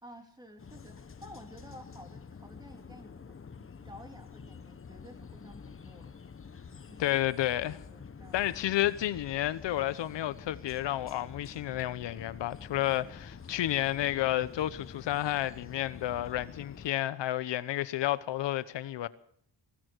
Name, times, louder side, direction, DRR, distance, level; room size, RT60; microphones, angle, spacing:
voice 1, 0.0-6.1 6.9-7.2 7.9-8.5, equal, 10° right, 3.5 m, -52 dB
sound 1, 0.6-16.9, left 6 dB, 30° left, 1.1 m, -48 dB
voice 2, 7.0-7.8 8.3-19.1, left 13 dB, 80° left, 1.0 m, -31 dB
19.5 x 16.0 x 4.7 m
cardioid pair, 80°, 43 cm